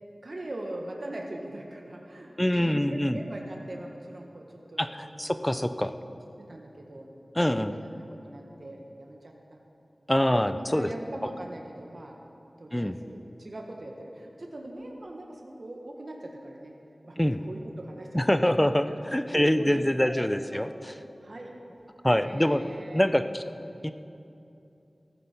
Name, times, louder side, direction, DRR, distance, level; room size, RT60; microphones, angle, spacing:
voice 1, 0.2-5.6 6.4-7.1 7.4-9.6 10.3-12.2 12.6-16.7 17.0-20.7 21.2-21.5 22.2-23.1, right 1 dB, 60° right, 0 dB, 1.4 m, -41 dB
voice 2, 2.4-3.2 4.8-5.9 7.4-7.8 10.1-10.9 12.7-13.0 17.2-17.4 18.1-18.8 19.1-20.7 22.0-22.6 22.9-23.4 23.8-23.9, left 1 dB, 15° left, 10 dB, 0.6 m, -24 dB
15.0 x 14.0 x 4.5 m, 2.7 s
wide cardioid pair, 55°, 0 cm